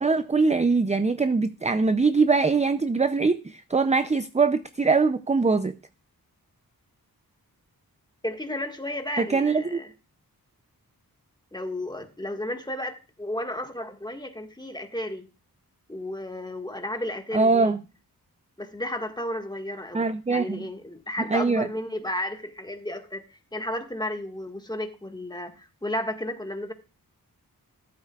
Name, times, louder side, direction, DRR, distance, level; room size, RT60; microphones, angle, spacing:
voice 1, 0.0-5.7 9.2-9.8 17.3-17.8 19.9-20.6 21.3-21.7, right 4 dB, 20° right, 0.5 m, -22 dB
voice 2, 8.2-9.9 11.5-15.3 15.9-17.7 18.6-26.7, left 1 dB, 10° left, 1.7 m, -33 dB
14.0 x 12.0 x 2.4 m
wide cardioid pair, 100°, 37 cm